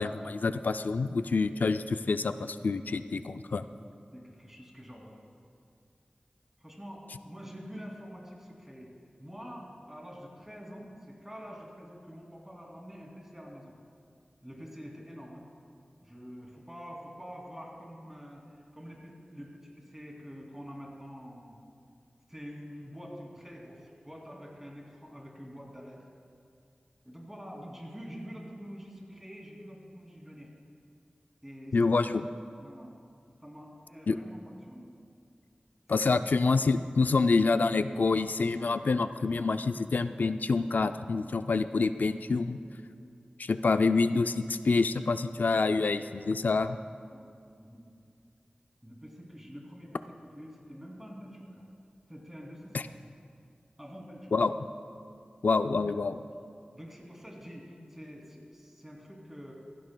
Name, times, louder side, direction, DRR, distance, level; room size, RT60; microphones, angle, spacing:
voice 1, 0.0-3.6 31.7-32.3 34.1-34.2 35.9-42.6 43.4-46.8 52.7-52.8 54.3-54.6 55.4-56.2, left 4 dB, 75° left, 10 dB, 0.3 m, -27 dB
voice 2, 4.1-5.2 6.6-8.9 9.2-13.7 14.4-15.5 16.0-21.6 22.3-26.1 27.0-30.5 31.4-31.8 32.6-32.9 33.4-34.9 36.0-36.2 47.1-47.3 47.6-47.8 48.8-51.6 52.1-52.7 53.8-54.3 56.7-59.5, equal, 10° right, -2 dB, 2.7 m, -46 dB
15.5 x 15.0 x 2.2 m, 2.3 s
wide cardioid pair, 60°, 3 cm